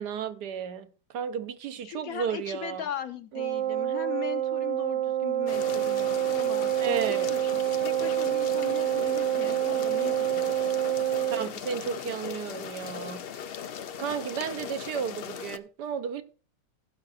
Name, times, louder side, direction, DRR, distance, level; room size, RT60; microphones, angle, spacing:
voice 1, 0.0-2.8 6.8-7.3 11.3-13.2 14.0-16.2, right 7 dB, 75° right, 1.4 m, -33 dB
voice 2, 1.8-10.5, left 9 dB, 65° left, 1.1 m, -39 dB
Wind instrument woodwind instrument, 3.3-11.5, right 12 dB, 55° right, 0.9 m, -27 dB
sound 1, 5.5-15.6, left 8 dB, 85° left, 0.5 m, -38 dB
15.5 x 5.7 x 4.2 m
omnidirectional pair, 1.8 m